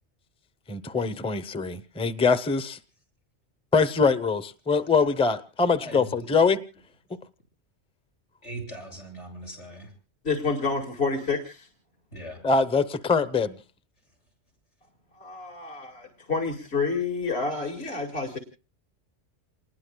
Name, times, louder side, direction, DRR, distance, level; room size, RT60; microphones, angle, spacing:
voice 1, 0.7-2.8 3.7-6.6 12.4-13.5, left 4 dB, 5° left, 0.7 m, -23 dB
voice 2, 5.8-6.4 8.4-9.9 12.1-12.4, right 1 dB, 90° left, 7.7 m, -40 dB
voice 3, 10.2-11.7 15.1-18.4, left 4 dB, 65° left, 2.4 m, -29 dB
29.0 x 20.0 x 2.3 m
omnidirectional pair, 1.2 m